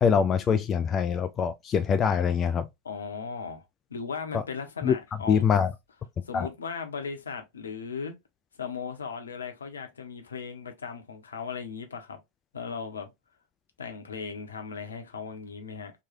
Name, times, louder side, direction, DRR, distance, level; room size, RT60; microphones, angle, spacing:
voice 1, 0.0-2.7 4.3-4.4 4.8-4.9 5.3-5.7 6.3-6.5, left 7 dB, 25° left, 0.3 m, -24 dB
voice 2, 2.8-3.6 3.9-5.5 6.2-8.1 8.6-12.2 12.5-13.1 13.8-15.9, left 5 dB, 70° left, 0.8 m, -37 dB
3.1 x 2.2 x 4.1 m
figure-of-eight pair, 90°, 0 cm